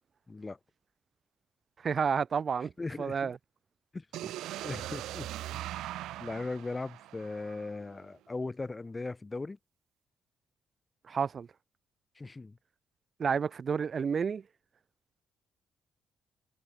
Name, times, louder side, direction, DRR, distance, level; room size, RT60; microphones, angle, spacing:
voice 1, 0.3-0.6 2.8-3.3 3.9-4.0 4.6-5.3 5.5-5.6 6.2-9.6 12.2-12.6, left 3 dB, 20° left, 1.3 m, -38 dB
voice 2, 1.8-2.7 3.0-3.4 11.1-11.5 13.2-14.4, right 6 dB, 45° right, 0.4 m, -30 dB
sound 1, 4.1-8.0, right 14 dB, 85° right, 1.6 m, -40 dB
cardioid pair, 90°, 0 cm